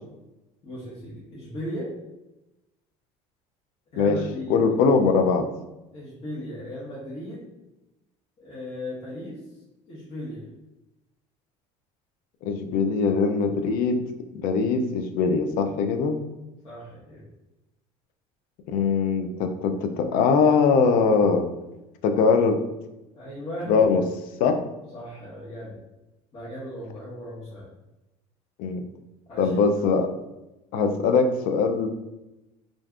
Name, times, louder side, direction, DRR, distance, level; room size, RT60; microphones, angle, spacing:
voice 1, 0.6-1.9 3.9-4.6 5.9-7.5 8.4-9.4 9.9-10.5 16.6-17.3 23.1-23.7 24.9-25.8 26.3-27.7 29.3-29.6, left 1 dB, 45° left, -8 dB, 1.1 m, -37 dB
voice 2, 4.5-5.5 12.4-14.0 14.3-16.2 18.7-21.4 22.0-22.6 23.7-24.0 24.4-24.6 28.6-28.8 29.4-30.1 30.7-31.9, left 5 dB, 70° left, 6 dB, 0.4 m, -21 dB
2.5 x 2.4 x 3.4 m, 0.97 s
supercardioid pair, 105°, 15 cm